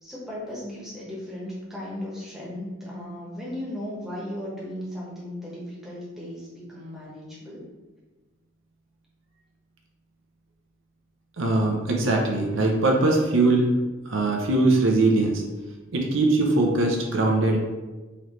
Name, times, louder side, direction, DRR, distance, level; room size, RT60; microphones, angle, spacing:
voice 1, 0.0-7.7, left 1 dB, ahead, -7 dB, 1.0 m, -36 dB
voice 2, 11.4-13.7 14.1-15.4 15.9-17.6, right 2 dB, 65° right, 1 dB, 0.6 m, -21 dB
3.9 x 3.1 x 3.1 m, 1.2 s
head